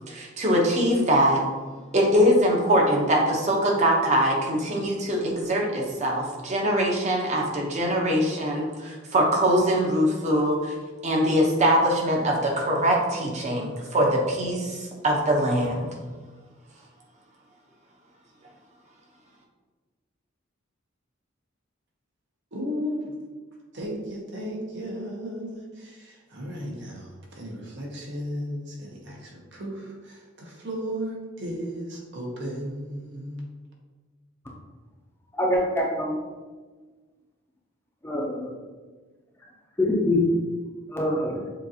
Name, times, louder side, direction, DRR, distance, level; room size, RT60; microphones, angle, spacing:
voice 1, 0.1-1.4 1.9-10.7 11.0-15.9, equal, 35° right, -1 dB, 0.9 m, -22 dB
voice 2, 22.5-33.5, equal, 65° right, -1 dB, 1.0 m, -35 dB
voice 3, 35.4-36.2 38.0-38.5 39.8-40.2 40.9-41.4, left 1 dB, 10° left, -2 dB, 0.6 m, -24 dB
6.8 x 2.5 x 2.8 m, 1.3 s
head